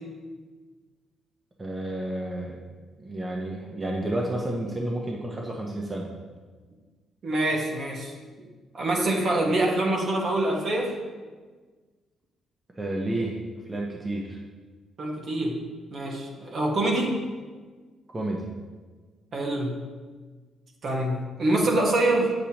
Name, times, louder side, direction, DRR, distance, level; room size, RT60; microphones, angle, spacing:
voice 1, 1.6-2.6 3.0-6.1 12.8-13.4 13.7-14.4 18.1-18.5, right 1 dB, 25° right, -2 dB, 1.0 m, -30 dB
voice 2, 7.2-8.1 8.7-11.0 15.0-15.6 15.9-17.2 19.3-19.8 20.8-22.3, right 1 dB, 50° right, 0 dB, 1.4 m, -25 dB
8.1 x 6.8 x 3.0 m, 1.4 s
cardioid pair, 90°, 0 cm